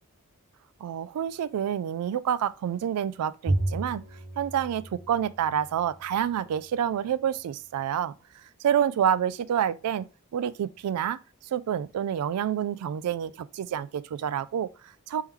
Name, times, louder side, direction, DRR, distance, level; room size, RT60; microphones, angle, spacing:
voice 1, 0.8-4.0 4.4-8.1 8.6-10.1 10.3-11.2 11.5-15.2, right 9 dB, 80° right, 0.3 m, -28 dB
Bowed string instrument, 3.5-6.0, right 1 dB, 40° right, 1.1 m, -32 dB
3.6 x 3.1 x 3.1 m
head